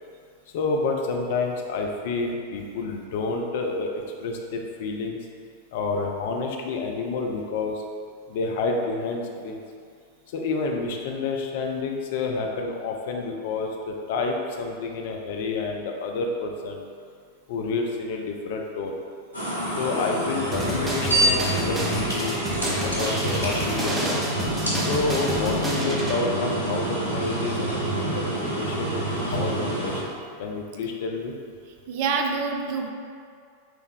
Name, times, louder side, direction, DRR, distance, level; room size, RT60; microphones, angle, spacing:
voice 1, 0.5-5.2 5.7-7.8 8.3-9.6 10.3-16.8 17.5-19.0 19.8-22.4 22.8-24.1 24.8-30.1 30.4-31.4, left 3 dB, 55° left, 2 dB, 0.4 m, -29 dB
sound 1, 19.3-30.0, right 1 dB, 90° right, 1.1 m, -27 dB
sound 2, 20.5-26.2, right 1 dB, 15° right, 0.7 m, -30 dB
voice 2, 31.9-32.9, right 5 dB, 50° right, 3 dB, 0.4 m, -26 dB
6.1 x 3.4 x 2.2 m, 2.2 s
figure-of-eight pair, 90°, 0 cm